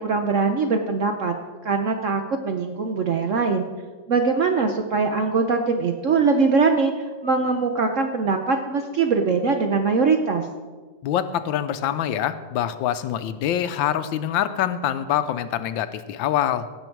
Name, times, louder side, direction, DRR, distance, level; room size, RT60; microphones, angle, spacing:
voice 1, 0.0-1.4 1.6-3.7 4.1-6.9 7.2-10.5, right 4 dB, 60° right, 5 dB, 0.8 m, -22 dB
voice 2, 11.0-16.7, left 10 dB, 80° left, 12 dB, 1.3 m, -25 dB
17.5 x 6.9 x 4.6 m, 1.4 s
omnidirectional pair, 2.1 m